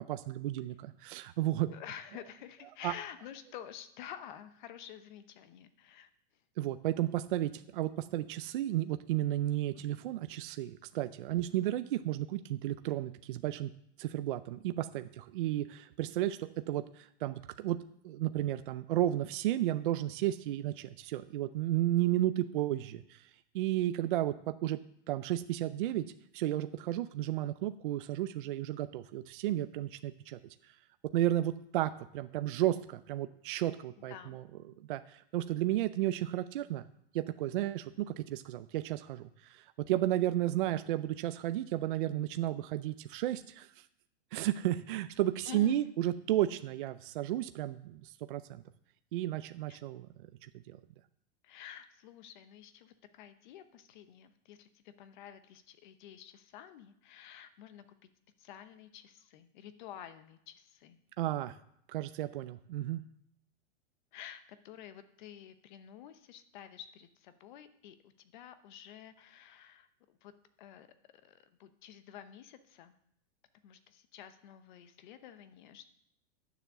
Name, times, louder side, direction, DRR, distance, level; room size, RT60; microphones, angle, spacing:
voice 1, 0.0-1.7 2.8-2.9 6.6-13.7 14.0-17.8 18.0-23.3 23.5-24.8 25.1-26.0 26.3-30.4 31.1-34.4 34.8-36.9 37.1-43.7 44.3-48.6 49.1-50.1 50.4-50.8 61.2-61.6 61.9-63.0, right 14 dB, 50° right, 10 dB, 0.4 m, -33 dB
voice 2, 1.7-6.1 11.3-11.6 34.1-34.4 45.5-45.8 49.7-49.8 51.4-57.8 58.4-61.0 64.1-70.3 70.6-70.9 71.2-72.9 73.6-75.9, left 10 dB, 40° left, 11 dB, 0.8 m, -50 dB
10.0 x 7.1 x 6.7 m, 0.72 s
supercardioid pair, 175°, 36 cm